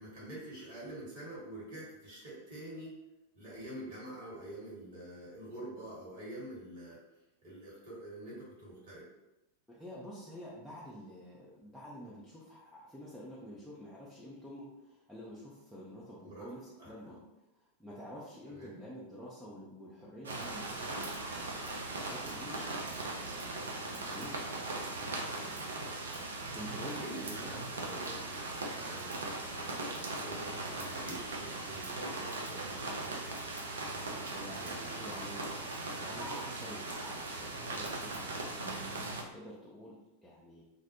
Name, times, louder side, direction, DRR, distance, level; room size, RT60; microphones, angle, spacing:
voice 1, 0.0-3.0 3.3-7.0 7.4-9.1 16.2-16.5 16.8-16.9 18.5-18.8 26.8-33.1 34.6-36.3, right 1 dB, 50° right, -7 dB, 1.4 m, -47 dB
voice 2, 9.7-17.2 17.6-21.5 21.9-24.5 25.0-25.5 26.5-27.7 34.3-35.4 36.1-38.3 38.6-39.0 39.3-40.6, equal, ahead, -8 dB, 0.5 m, -48 dB
sound 1, 20.2-39.2, right 2 dB, 70° right, 0.4 m, -39 dB
2.4 x 2.0 x 2.8 m, 0.96 s
figure-of-eight pair, 90°, 0 cm